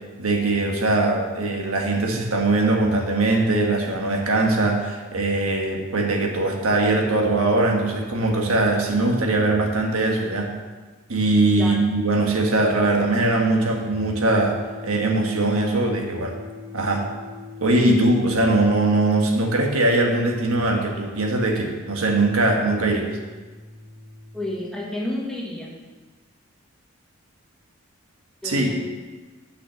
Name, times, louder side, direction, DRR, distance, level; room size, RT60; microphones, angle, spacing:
voice 1, 0.2-10.5 11.1-14.6 14.8-16.3 16.7-17.0 17.6-23.2 28.4-28.7, right 2 dB, 85° right, 1 dB, 1.4 m, -21 dB
sound 1, 12.4-24.5, left 4 dB, 65° right, 1.8 m, -41 dB
voice 2, 24.3-25.8 28.4-28.7, left 1 dB, 5° left, -3 dB, 1.3 m, -30 dB
6.3 x 5.8 x 6.8 m, 1.3 s
head